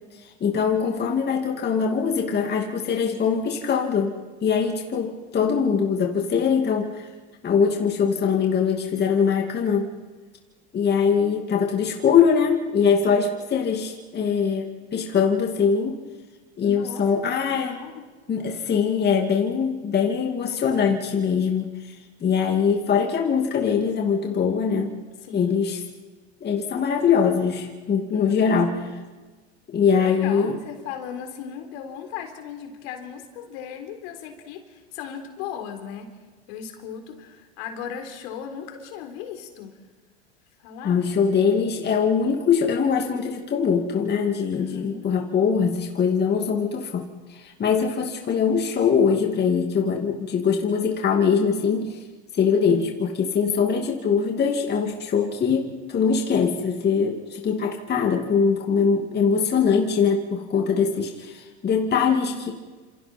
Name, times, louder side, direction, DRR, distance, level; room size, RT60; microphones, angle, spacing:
voice 1, 0.2-4.1 4.4-7.1 7.4-9.9 10.7-16.0 16.6-17.8 18.3-25.0 25.3-25.8 26.4-28.9 29.7-30.6 40.8-52.0 52.3-62.5, left 6 dB, 30° left, 1 dB, 2.5 m, -22 dB
voice 2, 16.6-18.1 25.2-25.7 28.1-28.5 28.8-29.0 29.9-36.1 36.5-39.7 40.6-41.0 44.5-45.1, left 8 dB, 65° left, 5 dB, 4.0 m, -37 dB
29.0 x 27.0 x 4.5 m, 1.3 s
hypercardioid pair, 100°, 34 cm